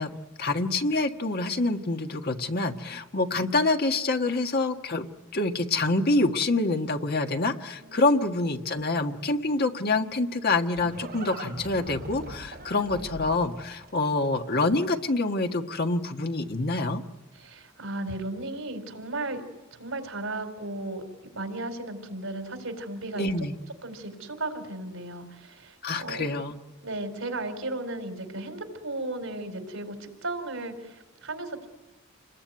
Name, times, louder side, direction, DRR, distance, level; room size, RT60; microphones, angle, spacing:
voice 1, 0.0-5.1 5.3-17.0 23.2-23.5 25.8-26.6, left 2 dB, 50° left, 5 dB, 1.6 m, -26 dB
voice 2, 7.7-8.1 17.3-19.4 19.7-21.0 21.3-23.3 23.8-26.3 26.8-31.7, right 2 dB, 80° right, 5 dB, 4.5 m, -35 dB
Livestock farm animals working animals, 10.1-15.2, right 2 dB, 45° right, 7.5 m, -42 dB
28.5 x 21.5 x 9.5 m, 1.1 s
head